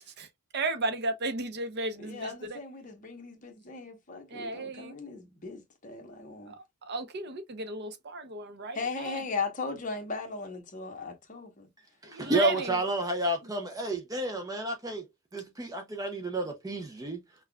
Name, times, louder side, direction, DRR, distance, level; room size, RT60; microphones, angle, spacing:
voice 1, 0.5-2.6 4.3-4.9 6.5-6.6 6.9-9.1 12.0-12.8, right 2 dB, 50° right, 0.7 m, -33 dB
voice 2, 2.0-6.6 8.7-11.7 12.5-12.6, left 4 dB, 40° left, 1.0 m, -38 dB
voice 3, 12.0-17.2, right 2 dB, 15° right, 0.5 m, -31 dB
5.5 x 2.3 x 2.3 m
head